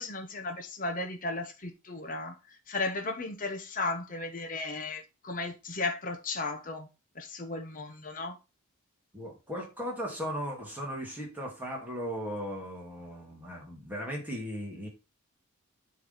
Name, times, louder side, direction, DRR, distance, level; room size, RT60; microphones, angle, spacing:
voice 1, 0.0-2.3 2.7-6.9 7.1-8.4, left 3 dB, 40° left, 1.2 m, -35 dB
voice 2, 9.1-14.9, equal, 10° right, 2.3 m, -37 dB
9.2 x 3.7 x 5.6 m
head